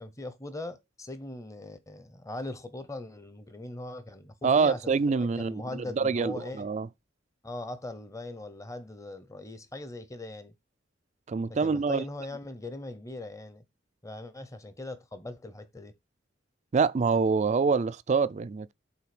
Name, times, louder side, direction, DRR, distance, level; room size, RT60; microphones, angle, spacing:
voice 1, 0.0-6.7 7.4-10.5 11.5-13.6 14.0-15.9, left 2 dB, 15° left, 0.8 m, -40 dB
voice 2, 4.4-5.6 6.0-6.9 11.3-12.0 16.7-18.7, right 5 dB, 35° right, 0.4 m, -25 dB
5.8 x 4.0 x 6.0 m
head